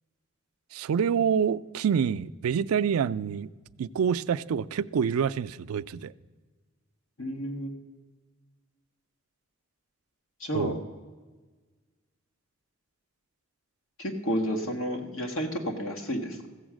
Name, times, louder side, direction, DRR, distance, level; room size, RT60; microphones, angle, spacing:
voice 1, 0.7-3.5 3.8-6.1 10.5-10.8, right 7 dB, 85° right, 0.4 m, -27 dB
voice 2, 7.2-7.7 10.4-10.7 14.0-16.5, equal, 70° left, 1.5 m, -31 dB
15.0 x 7.1 x 6.2 m
head